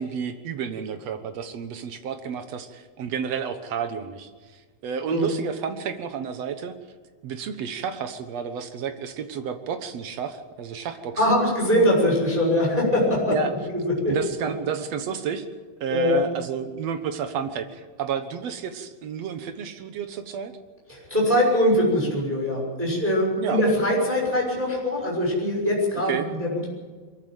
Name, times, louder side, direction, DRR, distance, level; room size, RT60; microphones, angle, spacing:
voice 1, 0.0-6.7 7.2-11.2 13.3-13.5 14.1-15.4 15.8-20.5 23.4-23.6 26.1-26.3, right 7 dB, 65° right, 8 dB, 1.6 m, -31 dB
voice 2, 11.2-13.3 14.0-14.1 15.9-16.2 20.9-26.7, left 1 dB, 10° right, -2 dB, 5.7 m, -22 dB
23.0 x 14.0 x 9.0 m, 1.5 s
omnidirectional pair, 4.6 m